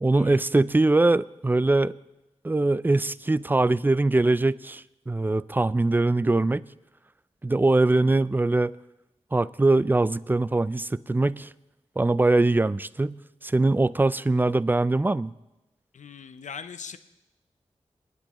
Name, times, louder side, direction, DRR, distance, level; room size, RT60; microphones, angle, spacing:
voice 1, 0.0-1.9 2.4-6.6 7.4-8.7 9.3-11.5 12.0-15.3, right 2 dB, 15° right, 18 dB, 0.4 m, -22 dB
voice 2, 15.9-17.0, left 6 dB, 90° left, 11 dB, 0.6 m, -40 dB
22.5 x 10.5 x 3.0 m, 0.97 s
wide cardioid pair, 65°, 12 cm